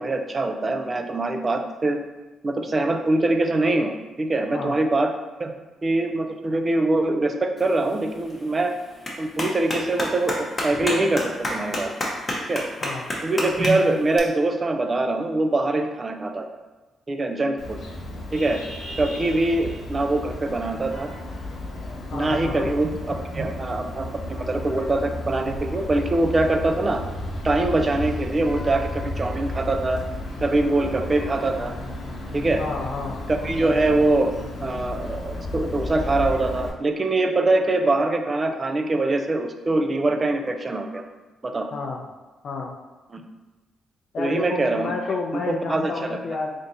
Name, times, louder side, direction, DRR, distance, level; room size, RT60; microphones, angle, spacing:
voice 1, 0.0-2.0 2.4-5.1 5.4-5.5 5.8-8.7 9.2-12.1 12.5-12.6 13.2-16.4 17.1-17.8 18.3-18.6 19.0-21.1 22.1-27.0 27.4-30.0 30.4-31.7 32.3-32.6 33.3-34.3 34.6-41.0 41.4-41.7 43.1-43.2 44.2-44.9 45.3-46.2, right 2 dB, 30° right, 5 dB, 0.4 m, -23 dB
Clapping, 7.6-14.2, left 1 dB, 25° left, 0.8 m, -31 dB
Vehicle horn car horn honking, 17.6-36.7, left 1 dB, 70° left, 0.9 m, -33 dB
voice 2, 22.1-22.7 32.6-33.2 41.7-42.0 42.4-42.7 44.1-46.5, left 4 dB, 55° left, 0 dB, 0.4 m, -30 dB
3.5 x 2.7 x 3.9 m, 1.2 s
cardioid pair, 110°, 0 cm